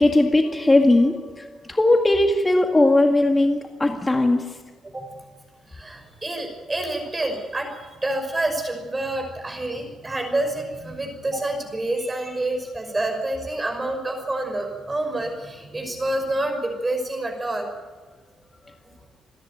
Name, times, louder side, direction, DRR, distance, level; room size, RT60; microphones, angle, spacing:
voice 1, 0.0-4.5, left 2 dB, 20° left, 3 dB, 2.0 m, -19 dB
voice 2, 5.7-7.7 8.0-17.7, right 1 dB, 20° right, 4 dB, 5.8 m, -27 dB
28.5 x 10.5 x 9.1 m, 1.3 s
cardioid pair, 90°, 0 cm